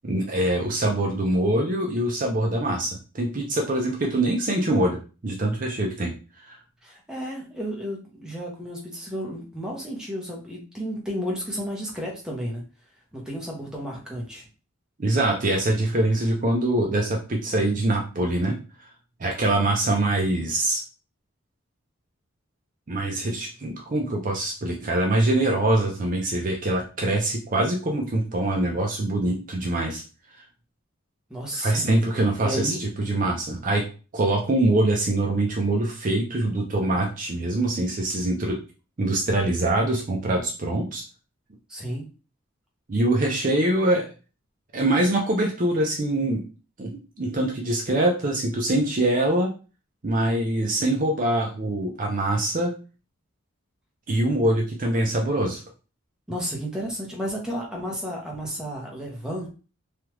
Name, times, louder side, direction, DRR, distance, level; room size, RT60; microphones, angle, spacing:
voice 1, 0.0-6.1 6.4-6.6 15.0-18.6 19.2-20.8 22.9-30.0 31.6-33.8 34.1-38.6 39.0-41.0 42.9-44.1 44.7-46.4 46.8-49.5 50.0-52.7 54.1-55.6, right 1 dB, 40° right, 0 dB, 0.5 m, -24 dB
voice 2, 6.8-12.6 13.1-14.4 31.3-31.9 32.4-32.8 41.7-42.1 56.3-59.5, equal, 5° right, -3 dB, 0.8 m, -32 dB
3.3 x 2.3 x 3.0 m, 0.34 s
head